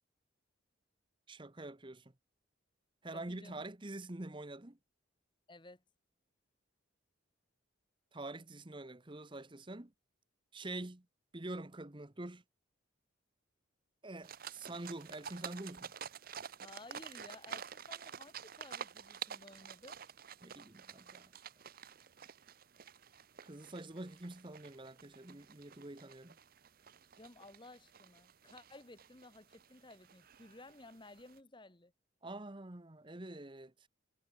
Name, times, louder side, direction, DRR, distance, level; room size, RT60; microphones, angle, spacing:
voice 1, 1.3-2.1 3.0-4.8 8.1-9.9 10.5-11.0 11.3-12.4 14.0-15.9 20.4-21.3 23.4-26.4 32.2-33.9, right 2 dB, 25° right, 1.1 m, -46 dB
voice 2, 3.1-3.6 5.5-5.8 16.6-20.0 27.2-31.9, left 2 dB, 25° left, 1.4 m, -55 dB
sound 1, 14.2-31.4, right 7 dB, 45° right, 0.7 m, -50 dB
head